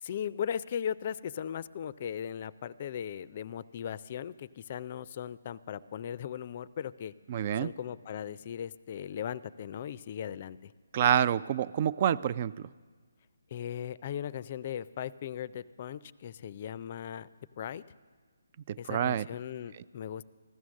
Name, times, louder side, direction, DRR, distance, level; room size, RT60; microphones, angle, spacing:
voice 1, 0.0-7.1 7.6-10.7 13.5-17.3 17.6-17.8 18.8-20.3, left 9 dB, 40° left, 19 dB, 0.4 m, -38 dB
voice 2, 7.3-7.7 10.9-12.7 18.7-19.3, right 10 dB, 35° right, 17 dB, 0.3 m, -27 dB
15.5 x 13.0 x 6.4 m, 1.5 s
figure-of-eight pair, 150°, 0 cm